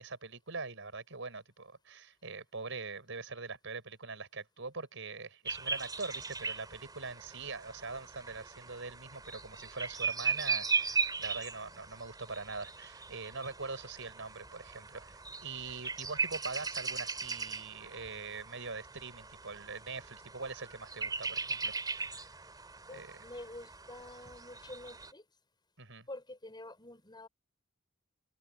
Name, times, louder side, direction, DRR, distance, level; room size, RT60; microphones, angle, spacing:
voice 1, 0.0-22.3 22.9-23.2 25.8-26.1, right 4 dB, 65° right, 6.8 m, -43 dB
sound 1, 5.4-25.1, right 4 dB, 20° right, 3.9 m, -38 dB
voice 2, 22.9-25.2 26.1-27.3, left 1 dB, 20° left, 5.8 m, -47 dB
head